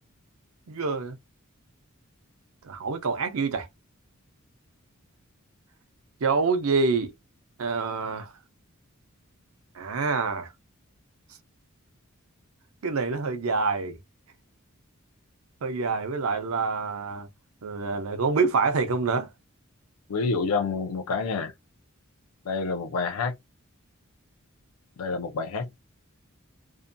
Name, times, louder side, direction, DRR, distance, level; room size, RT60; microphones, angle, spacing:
voice 1, 0.7-1.2 2.6-3.7 6.2-7.1 7.6-8.3 9.7-10.5 12.8-14.0 15.6-17.3 17.6-19.3, right 4 dB, 75° right, 0.5 m, -26 dB
voice 2, 20.1-21.5 22.4-23.3 25.0-25.7, left 4 dB, 85° left, 0.5 m, -28 dB
2.6 x 2.2 x 2.5 m
head